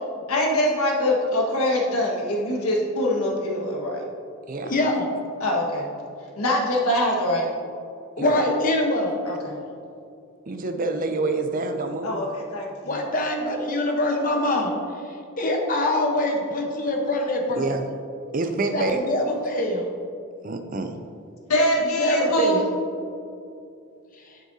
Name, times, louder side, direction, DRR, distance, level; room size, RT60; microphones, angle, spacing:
voice 1, 0.3-4.0 5.4-5.9 6.4-7.5 9.2-9.6 12.0-12.9 21.5-22.7, left 1 dB, 85° left, -2 dB, 1.6 m, -23 dB
voice 2, 4.6-5.1 8.2-9.1 12.8-14.7 15.4-17.7 18.6-19.8 21.9-22.6, left 1 dB, 40° left, 1 dB, 0.9 m, -24 dB
voice 3, 10.5-12.3 17.6-17.9 18.3-19.0 20.4-21.0, right 3 dB, 40° right, 7 dB, 0.5 m, -27 dB
10.0 x 7.6 x 2.7 m, 2.5 s
head